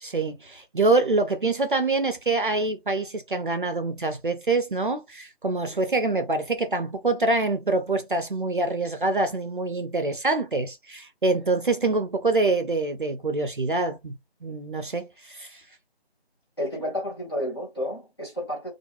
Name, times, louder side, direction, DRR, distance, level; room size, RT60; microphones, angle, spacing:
voice 1, 0.0-15.6, right 3 dB, 50° right, 0.5 m, -25 dB
voice 2, 16.6-18.7, equal, 25° left, 0.9 m, -31 dB
2.3 x 2.1 x 2.9 m
figure-of-eight pair, 170°, 32 cm